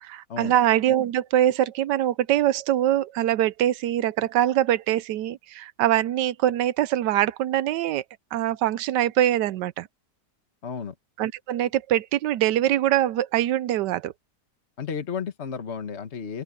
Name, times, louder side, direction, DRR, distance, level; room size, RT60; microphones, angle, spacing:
voice 1, 0.0-8.0 8.3-9.9 11.2-14.1, right 12 dB, 90° right, 1.2 m, -23 dB
voice 2, 10.6-10.9 14.8-16.4, left 6 dB, 40° left, 1.6 m, -32 dB
open air
omnidirectional pair, 1.8 m